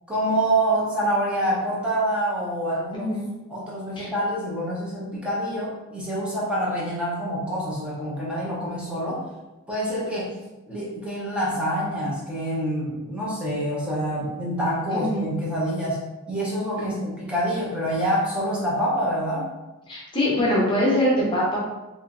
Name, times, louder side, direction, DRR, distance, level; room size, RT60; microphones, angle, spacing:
voice 1, 0.1-3.1 3.5-9.2 9.7-10.3 10.7-19.5, right 1 dB, 5° right, -7 dB, 0.9 m, -26 dB
voice 2, 2.9-3.3 4.0-4.1 14.9-15.3 16.8-17.1 19.9-21.6, left 1 dB, 20° left, -5 dB, 0.7 m, -23 dB
3.2 x 2.9 x 2.5 m, 1.0 s
head